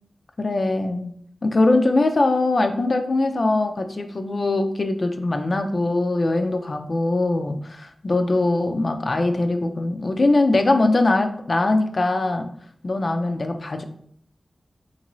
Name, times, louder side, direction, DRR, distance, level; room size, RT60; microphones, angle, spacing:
voice 1, 0.4-1.1 1.4-12.5 12.8-13.8, left 2 dB, 60° left, 6 dB, 0.3 m, -21 dB
3.0 x 2.6 x 2.9 m, 0.65 s
cardioid pair, 40°, 0 cm